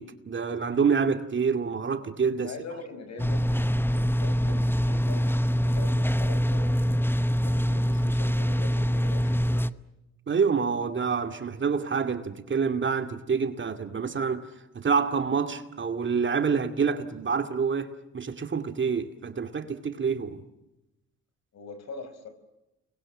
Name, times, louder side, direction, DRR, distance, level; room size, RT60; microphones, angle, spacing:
voice 1, 0.0-2.5 10.3-20.4, right 5 dB, 40° right, 2.3 m, -27 dB
voice 2, 2.4-7.0 7.4-9.6 21.5-22.3, left 3 dB, 60° left, 5.7 m, -43 dB
sound 1, 3.2-9.7, equal, 5° left, 0.9 m, -24 dB
30.0 x 22.0 x 7.5 m
cardioid pair, 90°, 30 cm